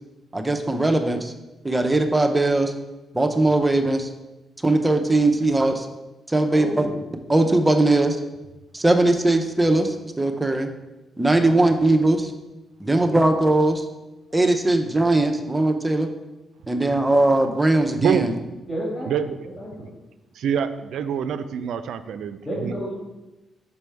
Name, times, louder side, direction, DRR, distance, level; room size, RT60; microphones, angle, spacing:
voice 1, 0.3-1.3 1.6-2.7 3.1-4.1 4.6-5.9 6.3-6.7 7.3-8.2 8.7-10.7 11.2-12.3 12.8-13.8 14.3-16.1 16.7-18.3, right 2 dB, 15° right, 5 dB, 0.7 m, -20 dB
voice 2, 6.5-7.0 11.5-11.6 12.8-13.1 18.7-19.3 19.6-19.9 22.4-22.9, equal, 35° left, -5 dB, 2.3 m, -31 dB
voice 3, 17.9-18.3 19.1-19.4 19.8-19.9 20.3-22.8, right 8 dB, 80° right, 11 dB, 0.4 m, -26 dB
6.0 x 5.4 x 3.4 m, 1.1 s
cardioid pair, 80°, 0 cm